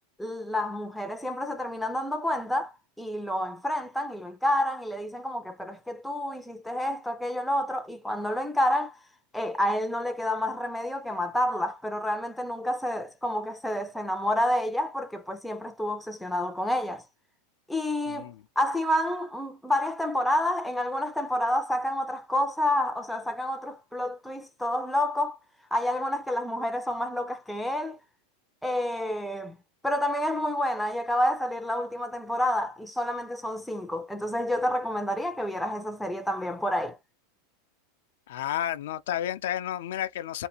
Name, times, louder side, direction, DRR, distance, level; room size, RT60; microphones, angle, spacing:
voice 1, 0.2-9.0 9.3-17.0 17.7-25.4 25.7-28.0 28.6-29.6 29.8-37.0, left 1 dB, ahead, 0.4 m, -29 dB
voice 2, 38.3-40.5, left 11 dB, 80° left, 0.5 m, -31 dB
3.4 x 2.5 x 2.9 m
supercardioid pair, 160°, 0 cm